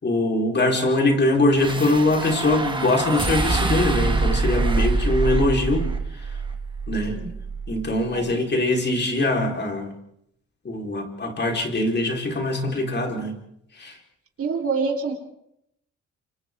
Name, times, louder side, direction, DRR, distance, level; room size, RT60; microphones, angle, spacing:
voice 1, 0.0-5.9 6.2-6.3 6.9-7.2 7.7-9.9 10.6-13.4 13.7-14.0, left 2 dB, 35° left, 2 dB, 4.5 m, -22 dB
sound 1, 1.6-8.0, right 3 dB, 15° right, 2.2 m, -25 dB
voice 2, 14.4-15.1, right 4 dB, 50° right, 1 dB, 4.3 m, -26 dB
29.0 x 25.5 x 3.8 m, 0.76 s
cardioid pair, 90°, 30 cm